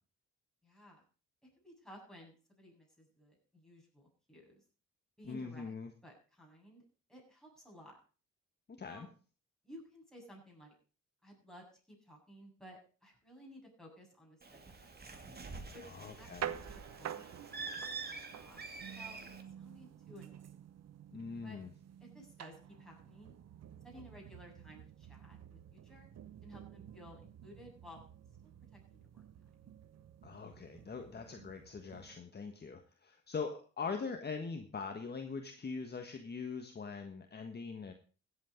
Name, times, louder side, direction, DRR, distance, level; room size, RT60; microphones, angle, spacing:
voice 1, 0.6-1.0 1.6-4.6 5.2-5.7 6.0-6.8 7.1-8.0 8.8-9.1 9.6-10.7 11.2-15.2 15.7-15.8 16.2-16.3 16.6-17.3 17.6-17.7 18.1-18.7 19.0-19.2 19.6-20.7 21.4-21.6 22.0-23.3 23.8-26.1 26.4-28.0 28.4-29.2 29.6-29.7, equal, ahead, -2 dB, 7.6 m, -56 dB
voice 2, 5.3-5.9 8.7-9.1 15.9-16.5 21.1-21.7 30.2-37.9, left 5 dB, 35° left, 5 dB, 1.5 m, -42 dB
Bird, 14.4-19.4, right 4 dB, 30° right, 2.4 m, -46 dB
sound 1, 16.0-32.2, right 9 dB, 60° right, 0.9 m, -50 dB
15.5 x 8.5 x 5.1 m, 0.38 s
cardioid pair, 90°, 30 cm